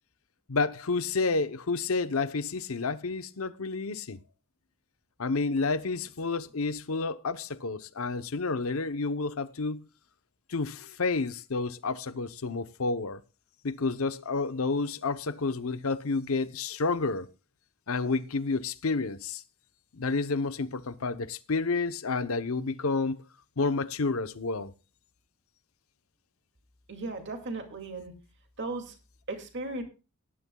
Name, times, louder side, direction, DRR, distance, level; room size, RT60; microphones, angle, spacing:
voice 1, 0.5-4.2 5.2-9.8 10.5-13.2 13.6-17.3 17.9-19.4 19.9-23.2 23.6-24.7, left 3 dB, 70° left, 0.8 m, -30 dB
voice 2, 26.9-28.1 28.6-29.0 29.3-29.8, right 2 dB, 55° right, 2.4 m, -36 dB
18.0 x 11.0 x 2.3 m
head